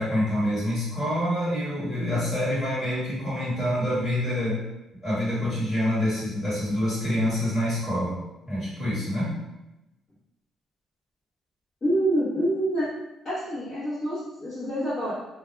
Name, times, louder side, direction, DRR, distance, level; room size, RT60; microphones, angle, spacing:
voice 1, 0.0-4.6 5.0-8.2 8.5-9.3, left 1 dB, 15° left, -10 dB, 1.5 m, -26 dB
voice 2, 11.8-12.9 13.2-15.1, right 1 dB, 30° left, -14 dB, 0.9 m, -26 dB
2.2 x 2.2 x 3.1 m, 0.96 s
cardioid pair, 180°, 0 cm